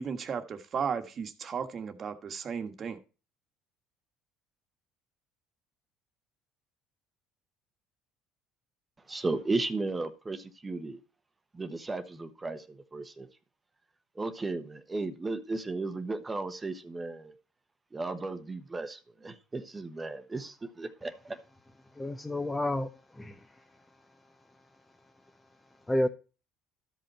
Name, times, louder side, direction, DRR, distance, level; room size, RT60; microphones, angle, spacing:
voice 1, 0.0-3.0, right 6 dB, 40° right, 1.4 m, -35 dB
voice 2, 9.1-11.0 11.5-13.3 14.2-17.3 17.9-21.4, right 3 dB, 20° right, 1.0 m, -35 dB
voice 3, 22.0-23.4 25.9-26.1, left 1 dB, 10° left, 0.7 m, -30 dB
13.0 x 5.4 x 4.2 m
supercardioid pair, 100°, 0 cm